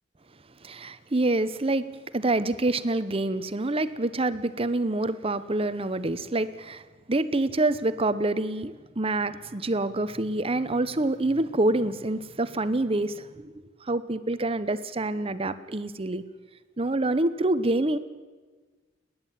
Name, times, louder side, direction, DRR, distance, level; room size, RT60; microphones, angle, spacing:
voice 1, 0.6-1.9 2.1-6.8 7.1-16.2 16.8-18.0, right 2 dB, 30° right, 13 dB, 0.9 m, -27 dB
30.0 x 10.5 x 9.1 m, 1.4 s
head